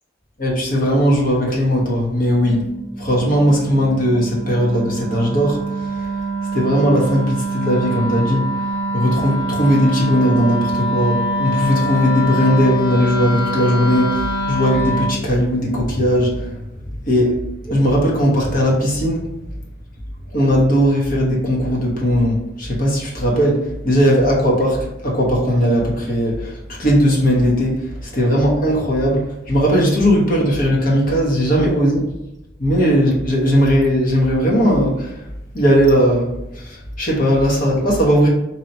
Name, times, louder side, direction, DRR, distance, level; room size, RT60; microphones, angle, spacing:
voice 1, 0.4-2.7 3.0-5.6 6.5-8.5 8.9-16.5 17.1-19.2 20.3-32.0 32.6-35.1 35.5-36.3 36.6-38.3, equal, 50° left, -3 dB, 1.1 m, -17 dB
Wind instrument woodwind instrument, 2.3-15.2, right 1 dB, 75° left, 1.2 m, -24 dB
3.0 x 2.8 x 4.1 m, 0.90 s
head